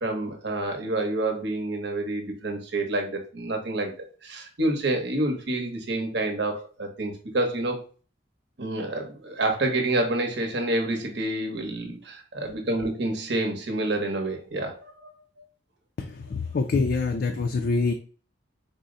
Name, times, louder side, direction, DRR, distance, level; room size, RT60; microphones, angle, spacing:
voice 1, 0.0-3.9 4.2-7.8 8.6-15.1, right 2 dB, 60° right, 3 dB, 0.9 m, -28 dB
voice 2, 16.0-17.9, left 4 dB, 55° left, 5 dB, 0.3 m, -25 dB
4.1 x 2.0 x 3.7 m, 0.39 s
head